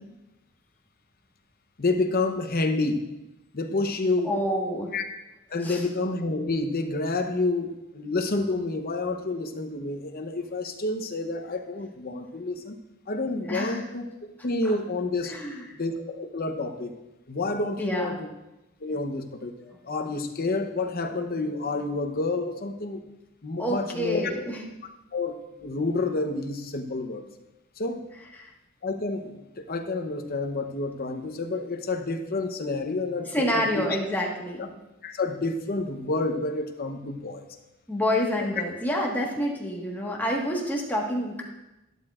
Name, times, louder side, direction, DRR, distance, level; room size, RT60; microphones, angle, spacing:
voice 1, 1.8-3.0 3.5-4.3 4.9-5.0 5.5-12.8 13.1-15.3 15.8-16.9 17.3-18.3 18.8-19.5 19.9-23.0 23.4-24.2 25.1-27.2 27.8-28.0 28.8-33.9 35.0-37.4, left 3 dB, 45° left, 6 dB, 0.8 m, -29 dB
voice 2, 4.2-4.9 5.6-5.8 13.5-13.8 14.6-14.8 15.2-15.7 17.8-18.2 19.6-19.8 23.6-24.6 28.4-28.5 33.3-34.7 37.9-41.4, equal, 10° left, -2 dB, 1.4 m, -28 dB
12.0 x 11.0 x 2.5 m, 0.95 s
head